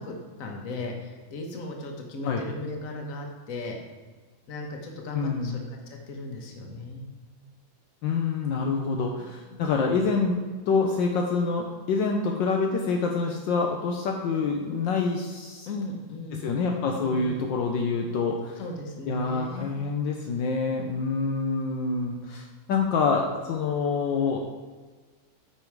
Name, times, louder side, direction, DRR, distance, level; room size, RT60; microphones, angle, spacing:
voice 1, 0.0-3.8 4.5-7.2 9.2-9.7 12.1-12.3 15.7-16.5 17.0-17.3 18.6-19.7, left 2 dB, 45° left, 2 dB, 1.4 m, -37 dB
voice 2, 5.1-5.6 8.0-15.7 16.4-18.6 19.1-24.4, left 4 dB, 70° left, 1 dB, 1.4 m, -26 dB
8.6 x 5.6 x 4.7 m, 1.3 s
omnidirectional pair, 2.2 m